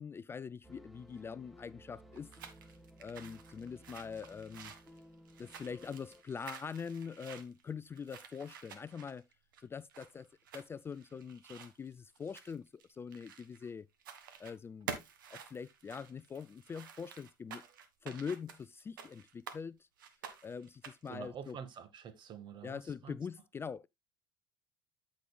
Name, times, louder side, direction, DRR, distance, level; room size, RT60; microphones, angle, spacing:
voice 1, 0.0-2.3 3.0-4.7 5.4-9.2 9.6-10.3 10.5-13.9 14.4-14.9 15.3-17.6 18.0-19.8 20.4-21.6 22.6-23.9, left 6 dB, 20° left, 0.3 m, -43 dB
sound 1, 0.6-6.2, equal, ahead, 1.3 m, -57 dB
sound 2, 2.1-13.7 14.0-14.6 14.9-19.6 20.0-21.2, right 7 dB, 85° right, 1.4 m, -50 dB
voice 2, 21.1-23.2, right 7 dB, 45° right, 1.4 m, -47 dB
14.0 x 5.2 x 2.2 m
hypercardioid pair, 80°, 11 cm